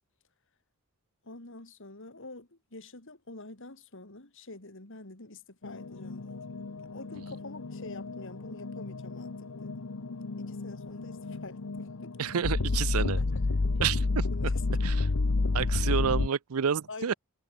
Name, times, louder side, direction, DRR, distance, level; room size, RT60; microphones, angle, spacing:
voice 1, 1.2-6.4 6.9-9.7 10.4-12.1 13.0-13.3 14.3-14.6 16.9-17.2, left 2 dB, 60° left, 3.1 m, -46 dB
sound 1, 5.6-16.3, left 3 dB, 75° left, 0.9 m, -31 dB
voice 2, 12.2-13.2 13.8-14.0 14.8-15.1 15.5-17.1, right 7 dB, 75° right, 0.6 m, -29 dB
head